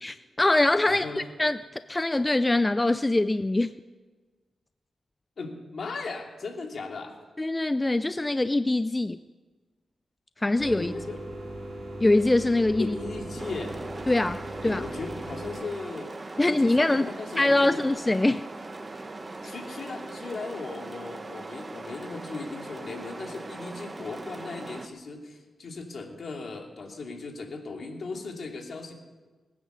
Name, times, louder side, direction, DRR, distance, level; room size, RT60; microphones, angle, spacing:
voice 1, 0.0-1.1 1.4-3.7 7.4-9.2 10.4-10.9 12.0-13.0 14.1-14.8 16.4-17.1 17.4-18.4, left 2 dB, 20° left, 12 dB, 0.4 m, -23 dB
voice 2, 0.8-1.2 5.4-7.2 10.8-11.2 12.8-13.8 14.6-17.8 19.4-28.9, left 3 dB, 60° left, 2 dB, 2.7 m, -37 dB
sound 1, 10.6-15.6, right 1 dB, 50° right, 3.7 m, -38 dB
sound 2, 13.4-24.9, right 2 dB, 30° right, 1.0 m, -40 dB
21.0 x 9.5 x 6.8 m, 1.3 s
cardioid pair, 85°, 0 cm